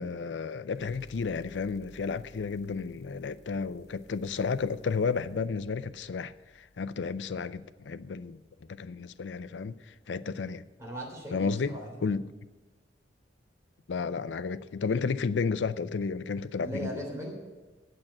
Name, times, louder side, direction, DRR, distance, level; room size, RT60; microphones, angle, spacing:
voice 1, 0.0-6.3 6.6-8.4 8.7-10.6 11.3-12.2 13.9-16.9, left 5 dB, 85° left, 0.5 m, -32 dB
Distorted bass drum, 0.7-8.0, left 4 dB, 65° left, 0.8 m, -57 dB
voice 2, 10.8-12.0 16.6-17.3, right 1 dB, 15° right, 3.3 m, -38 dB
8.9 x 7.5 x 8.6 m
head